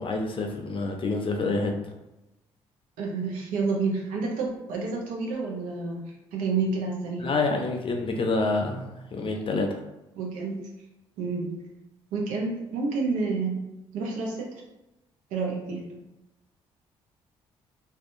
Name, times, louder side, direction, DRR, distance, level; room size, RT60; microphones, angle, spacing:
voice 1, 0.0-1.9 7.2-9.8, left 3 dB, 40° left, 3 dB, 0.5 m, -27 dB
voice 2, 3.0-6.0 6.3-7.3 10.1-10.6 11.2-11.5 12.1-13.5 13.9-14.5 15.3-15.8, right 4 dB, 80° right, 0 dB, 0.6 m, -29 dB
2.6 x 2.3 x 2.6 m, 0.95 s
hypercardioid pair, 55°, 13 cm